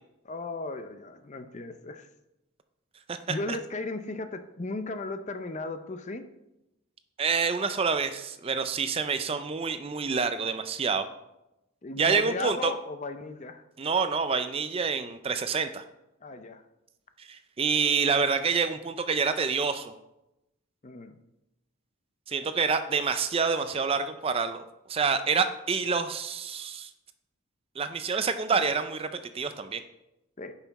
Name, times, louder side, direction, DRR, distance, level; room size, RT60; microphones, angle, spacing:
voice 1, 0.2-2.1 3.3-6.2 11.8-13.6 16.2-16.6 20.8-21.2 30.4-30.5, left 2 dB, 35° left, 9 dB, 0.5 m, -36 dB
voice 2, 7.2-11.1 12.0-12.7 13.8-15.8 17.2-19.9 22.3-26.9 27.8-29.8, right 5 dB, 25° right, 10 dB, 0.4 m, -27 dB
10.5 x 5.7 x 4.1 m, 0.91 s
head